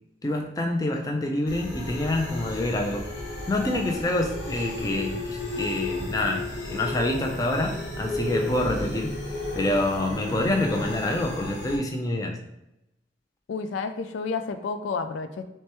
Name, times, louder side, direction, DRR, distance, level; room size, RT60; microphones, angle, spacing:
voice 1, 0.2-3.1 3.5-9.1 9.5-12.4, left 1 dB, 20° left, 2 dB, 0.4 m, -27 dB
sound 1, 1.5-11.8, left 2 dB, 75° left, 1.1 m, -33 dB
voice 2, 13.5-15.4, left 4 dB, 90° left, 8 dB, 0.4 m, -30 dB
6.3 x 2.2 x 3.0 m, 0.90 s
head